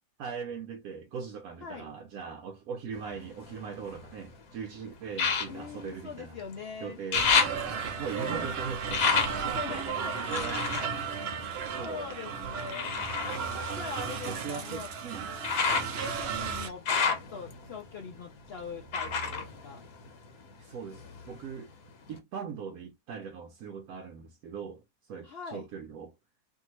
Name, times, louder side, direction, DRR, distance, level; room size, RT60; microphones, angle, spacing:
voice 1, 0.2-6.4 6.8-9.9 10.2-10.7 11.5-12.1 13.5-13.6 13.9-15.3 20.6-21.7 22.1-26.2, right 6 dB, 70° right, 1.0 m, -40 dB
sound 1, 2.9-4.3 5.1-6.6 6.9-12.1 12.7-20.5 20.9-21.7 22.2-22.3, left 5 dB, 65° left, 1.2 m, -32 dB
voice 2, 5.5-7.0 8.2-8.5 9.3-10.9 11.4-12.9 13.4-13.5 13.7-14.9 15.7-19.8 25.2-25.7, left 5 dB, 85° left, 0.5 m, -42 dB
sound 2, 7.1-16.7, right 6 dB, 90° right, 0.5 m, -35 dB
2.7 x 2.6 x 2.9 m
omnidirectional pair, 1.7 m